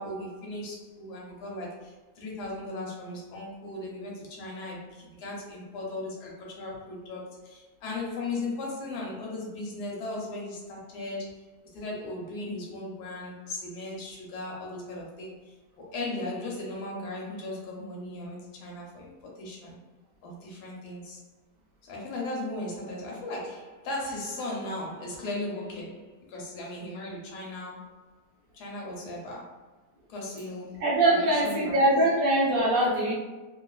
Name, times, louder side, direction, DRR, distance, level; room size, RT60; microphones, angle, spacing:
voice 1, 0.0-11.4 11.7-15.5 15.9-19.8 20.2-21.2 21.8-28.0 28.5-29.7 30.1-30.8 31.1-31.9, left 2 dB, 75° left, -3 dB, 1.3 m, -37 dB
voice 2, 30.8-33.1, right 1 dB, 65° right, -3 dB, 1.1 m, -23 dB
3.0 x 2.5 x 2.4 m, 1.2 s
omnidirectional pair, 1.7 m